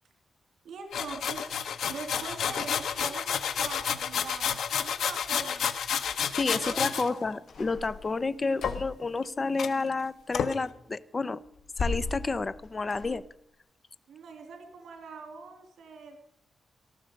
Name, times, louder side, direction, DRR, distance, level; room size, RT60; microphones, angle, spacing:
voice 1, 0.6-1.4 1.9-5.6 6.4-7.3 14.1-16.2, right 4 dB, 80° right, 5 dB, 3.0 m, -43 dB
sound 1, 0.9-7.1 8.6-9.2 9.6-9.7 10.3-10.5, left 8 dB, 85° left, 1.2 m, -30 dB
voice 2, 6.4-11.4 11.8-13.3, left 3 dB, 25° left, 16 dB, 0.7 m, -30 dB
sound 2, 7.5-9.0 11.5-13.1, left 4 dB, 65° left, 5.1 m, -36 dB
18.5 x 14.5 x 5.2 m, 0.79 s
wide cardioid pair, 145°, 0 cm